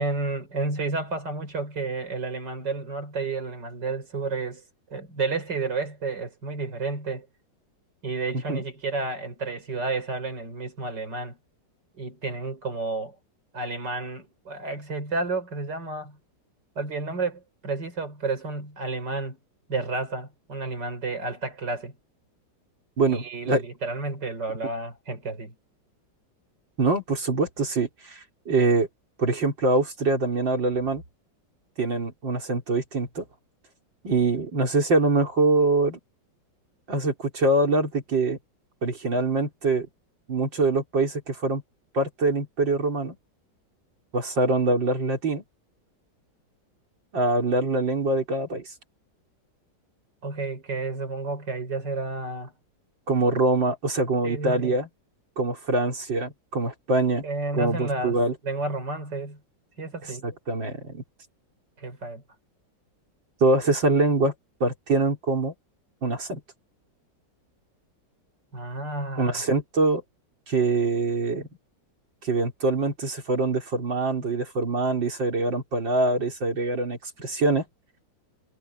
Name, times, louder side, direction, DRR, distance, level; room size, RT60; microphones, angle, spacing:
voice 1, 0.0-4.6 4.9-7.3 8.0-11.4 12.0-13.2 13.5-16.2 16.8-19.4 19.7-22.0 23.0-25.6 50.2-52.5 54.2-54.7 57.2-58.2 58.4-59.4 59.8-60.3 61.8-62.2 68.5-69.4, right 3 dB, 70° right, 5.3 m, -31 dB
voice 2, 23.0-23.6 26.8-28.9 29.2-31.0 31.8-33.2 34.0-36.0 36.9-38.4 38.8-39.9 40.3-41.6 41.9-43.2 44.1-45.4 47.1-48.7 53.1-54.9 55.4-57.2 57.6-58.3 60.2-61.0 63.4-64.3 64.6-65.5 66.0-66.4 69.2-70.0 70.5-71.5 72.2-77.6, right 2 dB, 85° right, 4.8 m, -24 dB
omnidirectional pair, 2.0 m